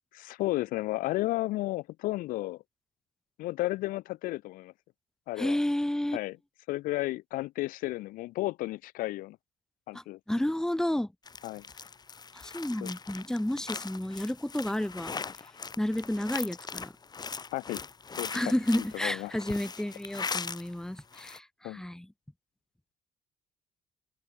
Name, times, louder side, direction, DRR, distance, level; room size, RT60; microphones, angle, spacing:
voice 1, 0.1-2.6 3.4-4.7 5.3-5.6 6.1-6.4 6.7-9.4 9.9-10.2 11.4-11.6 12.8-12.9 17.5-17.8 18.2-18.4 18.8-19.3 21.6-21.8, left 18 dB, 85° left, 3.8 m, -33 dB
voice 2, 5.4-6.2 9.9-11.1 12.3-15.1 15.8-16.9 18.3-22.1, left 1 dB, 5° left, 2.1 m, -31 dB
sound 1, 11.3-20.7 21.0-21.4, left 5 dB, 30° left, 3.7 m, -40 dB
open air
cardioid pair, 110°, 14 cm